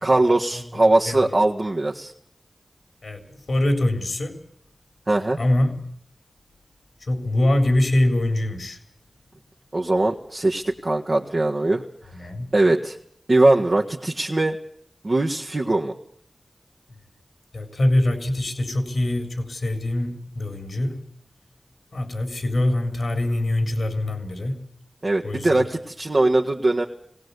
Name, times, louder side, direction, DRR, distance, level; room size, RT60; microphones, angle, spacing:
voice 1, 0.0-2.1 5.1-5.4 9.7-11.8 12.5-13.0 13.3-14.6 15.0-15.9 25.0-26.8, right 2 dB, 50° right, 1.7 m, -21 dB
voice 2, 0.6-1.2 3.0-4.3 5.4-5.7 7.0-8.8 12.1-12.5 17.5-21.0 21.9-24.6 25.2-25.7, left 1 dB, 80° left, 3.7 m, -24 dB
20.5 x 17.5 x 8.2 m
wide cardioid pair, 50°, 0 cm